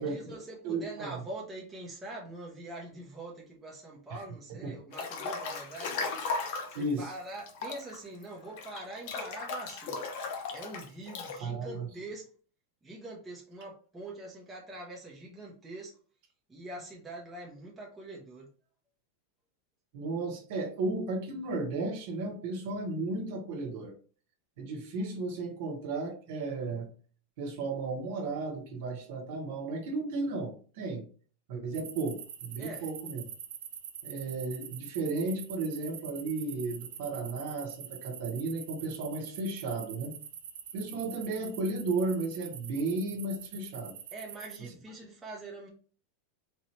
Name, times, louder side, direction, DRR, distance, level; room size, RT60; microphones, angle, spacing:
voice 1, 0.0-6.0 6.7-10.0 10.5-12.3 12.8-15.9 16.5-18.5 32.6-32.9 44.1-45.7, right 2 dB, 10° right, -3 dB, 0.7 m, -44 dB
voice 2, 0.6-1.2 4.1-4.2 4.5-4.8 6.7-7.1 11.4-11.9 19.9-23.9 24.6-26.9 27.4-31.1 31.5-33.2 34.0-40.1 40.7-43.9, right 3 dB, 50° right, 3 dB, 1.0 m, -34 dB
Breathing / Bathtub (filling or washing) / Splash splatter, 4.9-6.8 7.4-11.4, left 4 dB, 45° left, 0.7 m, -36 dB
sound 1, 31.7-44.6, right 9 dB, 80° right, 0.6 m, -45 dB
3.9 x 2.8 x 3.1 m, 0.41 s
supercardioid pair, 175°, 0 cm